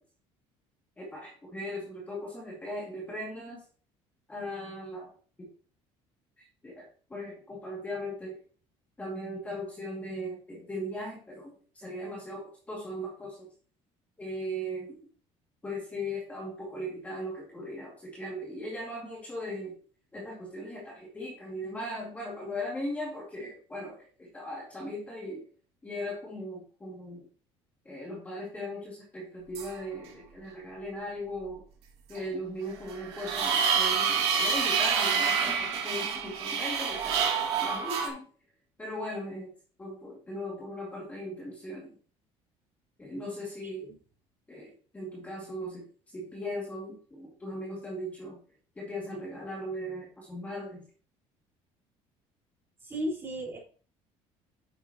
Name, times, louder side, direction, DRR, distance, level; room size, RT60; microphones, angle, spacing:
voice 1, 1.0-3.6 4.3-5.1 5.4-5.5 6.4-8.4 9.0-13.5 14.2-15.0 15.6-19.7 20.1-25.4 25.8-27.3 27.9-31.6 32.1-38.3 38.8-39.5 39.8-41.9 43.0-43.9 44.5-48.4 48.8-50.8, equal, 10° left, -3 dB, 2.4 m, -38 dB
sound 1, 29.5-29.7 32.2-32.3 32.8-38.1, right 6 dB, 55° right, 2.9 m, -27 dB
voice 2, 52.8-53.6, equal, 20° right, -4 dB, 4.6 m, -35 dB
9.5 x 7.8 x 3.0 m, 0.41 s
cardioid pair, 165°, 12 cm